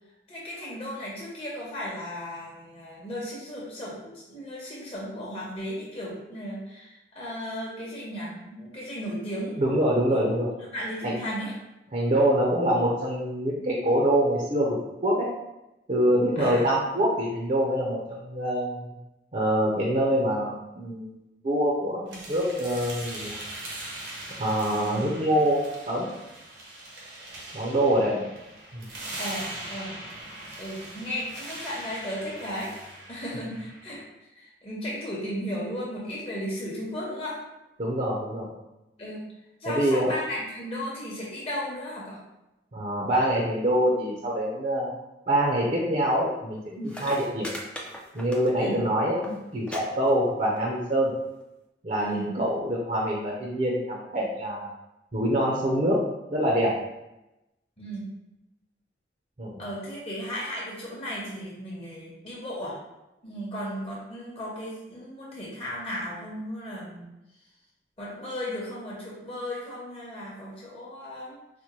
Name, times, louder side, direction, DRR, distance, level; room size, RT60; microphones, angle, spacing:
voice 1, 0.3-10.2 10.7-11.5 16.4-16.6 24.8-25.1 28.1-28.3 29.2-29.9 30.6-32.8 33.1-37.4 39.0-39.2 39.6-42.2 48.6-48.8 52.0-52.4 57.8-58.1 59.6-62.7 63.2-67.1 68.0-71.4, equal, 35° left, -5 dB, 0.8 m, -35 dB
voice 2, 9.6-10.5 11.0-11.1 11.9-14.8 15.0-15.3 15.9-18.9 19.3-21.1 21.4-23.3 24.4-26.1 27.5-28.2 28.7-28.9 37.8-38.5 39.7-40.1 42.7-44.9 45.3-47.5 48.1-51.1 51.8-54.7 55.1-56.0 56.3-56.7 59.4-59.6, right 1 dB, 40° right, -4 dB, 0.5 m, -25 dB
sound 1, 22.1-34.0, right 1 dB, 75° right, 0.9 m, -41 dB
sound 2, 46.6-46.7 46.9-48.8 49.1-49.3 49.7-49.8 50.1-50.6 51.4-51.5, equal, 5° left, 0.3 m, -38 dB
4.2 x 2.1 x 2.9 m, 0.94 s
head